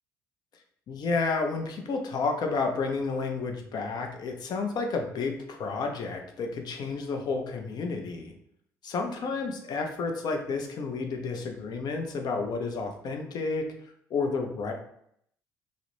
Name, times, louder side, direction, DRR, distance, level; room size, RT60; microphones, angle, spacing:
voice 1, 0.9-8.3 8.8-13.7 14.1-14.7, left 4 dB, 55° left, 4 dB, 0.5 m, -31 dB
2.4 x 2.0 x 2.9 m, 0.71 s
hypercardioid pair, 55°, 8 cm